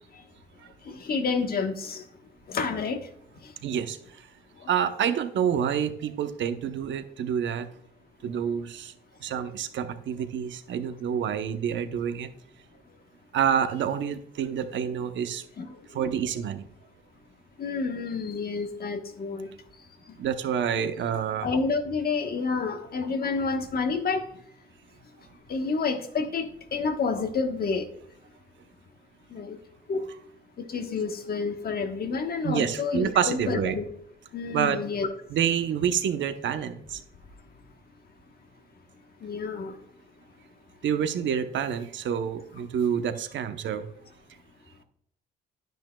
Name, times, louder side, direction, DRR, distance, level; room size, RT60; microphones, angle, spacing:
voice 1, 0.9-2.0 2.5-3.0 15.6-15.7 17.6-19.5 21.4-24.2 25.5-27.8 29.3-29.6 29.9-30.0 30.6-33.9 34.3-35.1 39.2-39.8, left 4 dB, 50° left, 6 dB, 1.3 m, -29 dB
voice 2, 3.6-4.3 4.7-7.7 8.2-8.9 9.2-12.3 13.3-15.4 15.9-16.7 20.2-21.5 32.4-33.8 34.5-34.8 35.3-37.0 40.8-43.9, right 8 dB, 70° right, 8 dB, 0.9 m, -28 dB
10.0 x 9.2 x 2.3 m, 0.70 s
cardioid pair, 90°, 20 cm